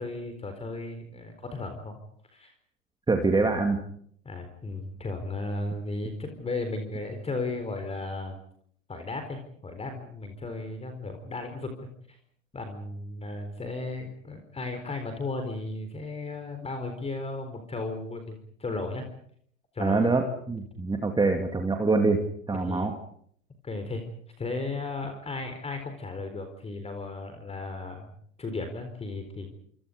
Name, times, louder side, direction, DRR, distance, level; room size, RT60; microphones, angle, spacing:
voice 1, 0.0-2.0 2.3-2.5 4.2-8.4 8.9-12.2 12.5-19.1 19.7-20.1 22.6-22.9 23.6-24.0 24.4-28.1 28.4-29.5, left 3 dB, 15° left, 7 dB, 4.1 m, -35 dB
voice 2, 3.1-3.8 19.8-23.0, right 3 dB, 10° right, 4 dB, 2.6 m, -25 dB
27.0 x 27.0 x 5.3 m, 0.64 s
hypercardioid pair, 100°, 39 cm